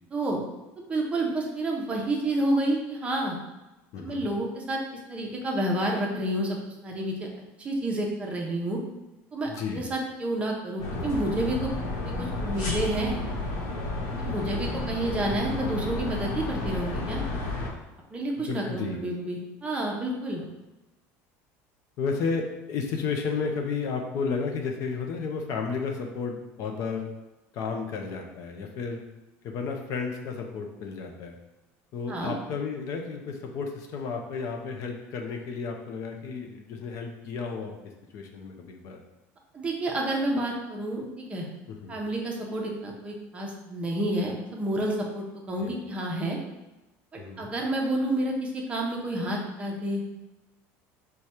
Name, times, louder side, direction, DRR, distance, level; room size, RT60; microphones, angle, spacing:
voice 1, 0.1-0.4 0.9-3.4 4.0-4.8 5.1-7.3 7.6-8.8 9.3-11.7 12.0-13.2 14.2-17.2 18.1-20.4 32.1-32.3 39.5-41.5 41.9-46.4 47.1-50.0, right 1 dB, 20° right, -1 dB, 0.7 m, -29 dB
voice 2, 3.9-4.3 9.5-9.9 14.3-14.9 18.4-19.0 22.0-27.1 27.5-29.0 29.4-31.4 31.9-37.7 38.1-39.0 41.7-42.0 45.6-45.8 47.2-47.5, left 5 dB, 50° left, 3 dB, 0.6 m, -32 dB
sound 1, 10.8-17.7, left 2 dB, 80° left, 1.0 m, -31 dB
4.8 x 2.3 x 4.2 m, 1.0 s
cardioid pair, 145°, 7 cm